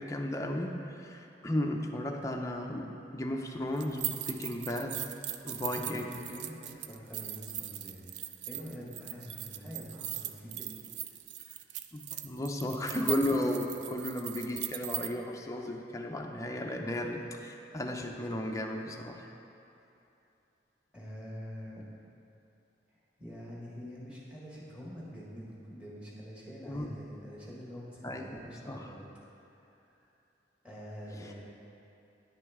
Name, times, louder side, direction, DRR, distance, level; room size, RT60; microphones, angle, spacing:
voice 1, 0.0-5.0 5.4-6.2 11.9-19.3 26.7-27.0 28.0-28.9, left 1 dB, 15° left, 1 dB, 0.5 m, -34 dB
sound 1, 3.8-15.1, right 13 dB, 65° right, 0.3 m, -39 dB
voice 2, 5.7-10.7 11.0-11.2 20.9-21.9 23.2-29.1 29.4-30.1 30.6-31.4, equal, 5° right, -6 dB, 1.4 m, -46 dB
10.0 x 6.2 x 3.6 m, 2.8 s
head